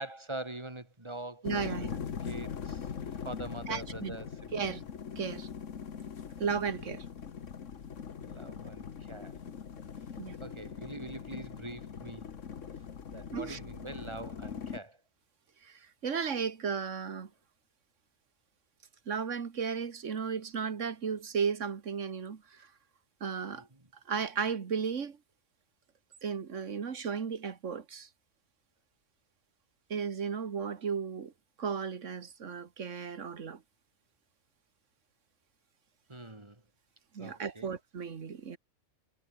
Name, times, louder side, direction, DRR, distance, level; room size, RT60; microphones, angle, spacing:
voice 1, 0.0-2.9 3.2-4.8 8.2-9.4 10.4-12.3 13.1-15.0 23.5-23.7 36.1-36.6 37.2-37.7, right 2 dB, 25° right, 2.7 m, -44 dB
sound 1, 1.4-14.8, left 7 dB, 85° left, 1.7 m, -41 dB
voice 2, 1.4-1.9 3.7-4.1 4.5-4.8 5.2-5.5 6.4-7.1 10.2-10.4 13.3-13.6 15.6-17.3 19.1-22.7 23.2-23.7 24.1-25.2 26.2-28.1 29.9-31.3 31.6-33.6 37.1-38.6, right 6 dB, 85° right, 1.8 m, -34 dB
omnidirectional pair, 1.3 m